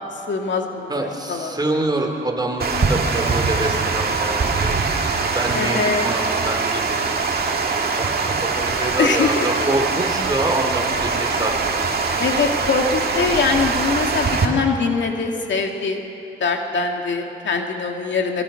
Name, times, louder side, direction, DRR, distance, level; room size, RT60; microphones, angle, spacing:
voice 1, 0.3-1.5 5.5-6.1 9.0-9.5 12.2-16.0 16.4-18.4, left 4 dB, 70° left, 2 dB, 2.3 m, -22 dB
voice 2, 0.9-4.7 5.3-11.8, right 1 dB, 20° right, 2 dB, 3.7 m, -26 dB
Water, 2.6-14.5, right 4 dB, 55° right, 2.3 m, -22 dB
25.0 x 23.5 x 5.9 m, 2.7 s
cardioid pair, 70°, 19 cm